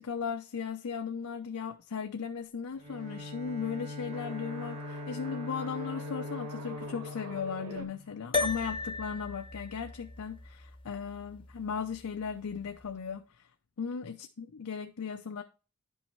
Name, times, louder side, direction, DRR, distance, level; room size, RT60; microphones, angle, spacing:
voice 1, 0.0-13.5 13.8-15.4, left 6 dB, 85° left, 0.6 m, -37 dB
Bowed string instrument, 2.7-8.4, left 3 dB, 30° right, 1.3 m, -42 dB
sound 1, 4.0-7.8, right 1 dB, 80° right, 1.5 m, -45 dB
sound 2, 8.3-12.9, left 3 dB, 25° left, 0.7 m, -37 dB
10.5 x 5.5 x 3.1 m
head